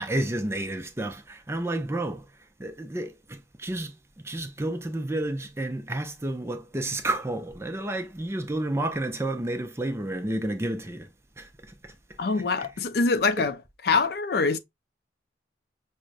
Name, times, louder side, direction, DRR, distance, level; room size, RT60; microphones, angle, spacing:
voice 1, 0.0-2.2 2.6-3.9 4.2-11.1 11.4-11.5 11.8-11.9 12.6-12.7, right 1 dB, 15° right, 0.4 m, -30 dB
voice 2, 12.2-13.6 13.8-14.6, left 4 dB, 55° left, 0.4 m, -24 dB
6.1 x 2.1 x 2.5 m
head